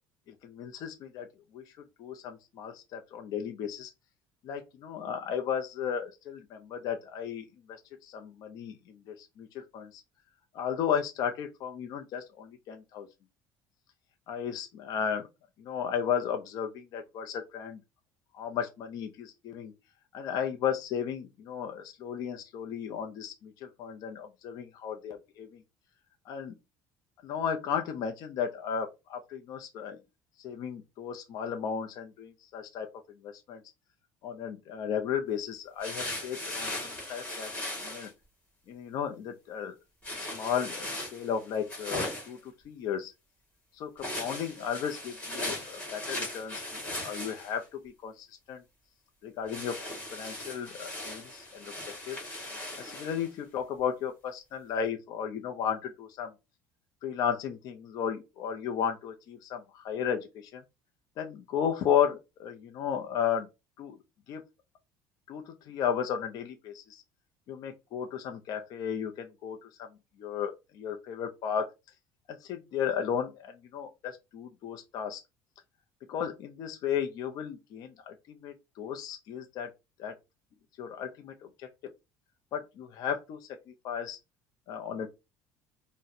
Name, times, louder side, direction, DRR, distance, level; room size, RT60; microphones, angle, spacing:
voice 1, 0.4-1.3 1.5-1.6 2.0-3.9 4.4-10.0 10.5-13.1 14.3-15.3 15.6-17.8 18.3-19.7 20.1-25.6 26.3-26.5 27.2-30.0 30.4-32.9 33.2-33.6 34.2-38.1 38.7-39.7 40.2-43.1 43.8-46.6 47.0-48.6 49.2-49.8 50.1-51.7 52.1-52.2 52.8-56.3 57.0-60.6 61.2-63.5 63.8-64.0 64.3-64.4 65.3-67.0 67.5-69.9 70.2-71.7 72.3-75.2 76.1-79.7 80.0-80.1 80.8-81.3 82.5-83.4 83.8-84.2 84.7-85.1, left 8 dB, 55° left, 0.4 m, -34 dB
sound 1, 35.8-38.1 40.0-42.4 44.0-47.6 49.5-53.3, left 1 dB, 15° left, 1.7 m, -38 dB
4.0 x 2.0 x 2.6 m
cardioid pair, 135°, 8 cm